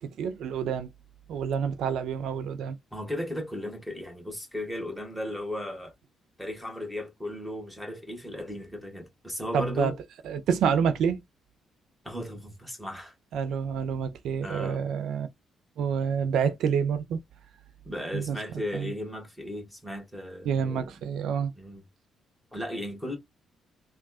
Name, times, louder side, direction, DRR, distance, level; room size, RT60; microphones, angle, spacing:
voice 1, 0.2-0.9 1.3-2.8 9.5-9.9 10.2-11.2 13.3-15.3 15.8-17.2 18.1-18.4 18.7-18.9 20.4-21.5, right 7 dB, 75° right, 0.4 m, -28 dB
voice 2, 2.9-5.9 6.4-10.0 12.0-13.1 14.4-14.8 17.8-20.9 21.6-21.8 22.5-23.2, left 1 dB, ahead, 1.5 m, -36 dB
3.4 x 2.3 x 2.3 m
cardioid pair, 90°, 0 cm